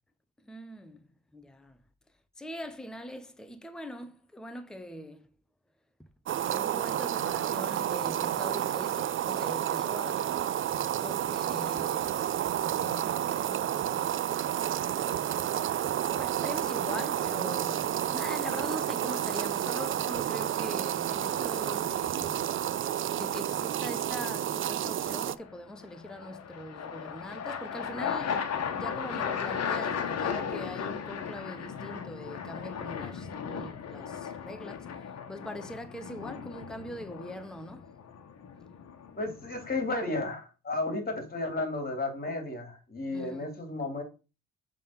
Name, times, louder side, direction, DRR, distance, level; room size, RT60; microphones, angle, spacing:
voice 1, 0.4-1.0 1.3-1.8 2.4-5.3 6.4-10.4 11.0-12.1 12.6-14.3 15.0-15.3 15.8-22.4 23.1-34.9 35.3-38.0 43.1-43.5, left 1 dB, ahead, 0.9 m, -42 dB
sound 1, 6.3-25.3, right 11 dB, 45° right, 0.4 m, -30 dB
sound 2, 21.1-21.6 25.4-40.0, left 7 dB, 55° left, 1.3 m, -36 dB
voice 2, 39.1-44.0, left 2 dB, 30° left, 2.9 m, -33 dB
7.3 x 3.7 x 5.8 m
cardioid pair, 90°, 30 cm